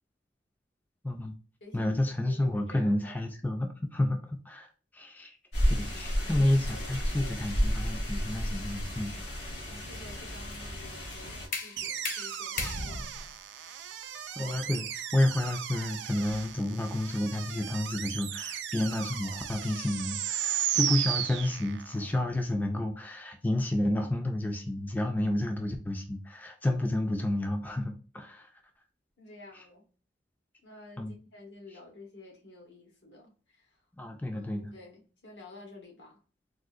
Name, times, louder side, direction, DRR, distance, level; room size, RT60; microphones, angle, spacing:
voice 1, 1.0-1.3 1.7-5.4 5.8-9.4 12.6-12.7 14.4-28.6 29.5-29.6 31.0-31.1 33.9-34.7, left 1 dB, 10° left, 0.3 m, -30 dB
voice 2, 1.6-1.9 2.2-3.1 6.2-6.9 7.2-7.6 9.7-13.8 29.2-29.9 30.6-33.8 34.3-36.2, left 2 dB, 80° left, 1.1 m, -51 dB
sound 1, 5.5-11.5, equal, 65° left, 1.5 m, -32 dB
sound 2, 10.8-16.6, left 3 dB, 50° left, 0.7 m, -40 dB
sound 3, 11.8-22.1, right 10 dB, 80° right, 0.4 m, -35 dB
3.7 x 2.4 x 2.4 m
head